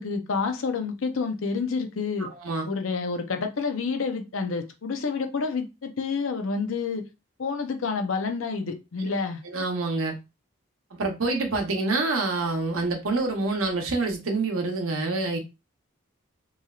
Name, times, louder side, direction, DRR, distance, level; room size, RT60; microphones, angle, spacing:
voice 1, 0.0-2.3 2.7-7.0 7.4-9.4, left 4 dB, 70° left, 0.6 m, -29 dB
voice 2, 2.2-2.7 9.0-9.1 9.4-10.2 10.9-15.4, right 3 dB, 80° right, 0.8 m, -27 dB
3.1 x 2.7 x 2.3 m
head